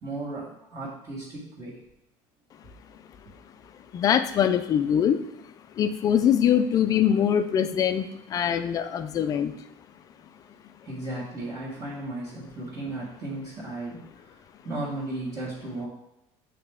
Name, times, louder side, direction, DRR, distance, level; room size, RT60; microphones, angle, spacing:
voice 1, 0.0-1.8 10.8-14.4 14.6-15.9, right 2 dB, 30° right, -8 dB, 1.6 m, -35 dB
voice 2, 3.9-5.2 5.8-8.0 8.3-9.5, left 9 dB, 30° left, 10 dB, 0.4 m, -23 dB
7.9 x 3.3 x 3.6 m, 0.87 s
cardioid pair, 145°, 12 cm